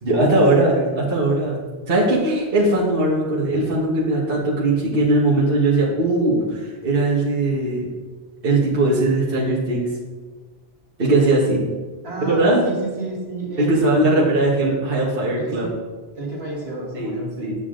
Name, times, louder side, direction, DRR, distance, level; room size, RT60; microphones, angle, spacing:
voice 1, 0.0-1.6 1.9-7.9 8.4-9.9 11.0-11.6 12.3-12.6 13.6-15.7 16.9-17.1 17.4-17.6, right 2 dB, 60° right, -6 dB, 1.7 m, -19 dB
voice 2, 0.5-1.0 12.0-14.3 15.4-15.7 16.2-17.5, right 2 dB, 75° right, -3 dB, 2.1 m, -31 dB
8.4 x 7.0 x 3.8 m, 1.3 s
omnidirectional pair, 1.1 m